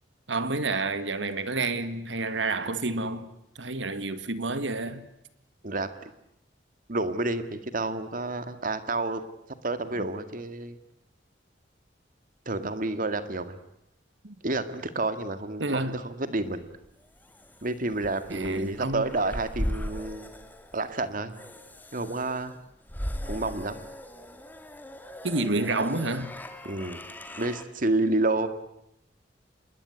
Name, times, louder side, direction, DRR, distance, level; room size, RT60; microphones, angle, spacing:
voice 1, 0.3-3.3 3.6-5.0 10.0-10.1 14.2-14.3 15.6-16.0 18.3-19.0 25.2-26.3, right 2 dB, 80° right, 1.9 m, -29 dB
voice 2, 5.6-6.1 6.9-9.2 9.6-10.8 12.5-13.6 14.4-16.6 17.6-20.3 20.7-21.3 21.9-22.6 23.2-23.8 26.7-27.0 27.4-28.5, right 2 dB, 50° right, 2.0 m, -29 dB
sound 1, 16.6-27.6, equal, 10° left, 2.0 m, -39 dB
27.0 x 21.0 x 9.7 m
head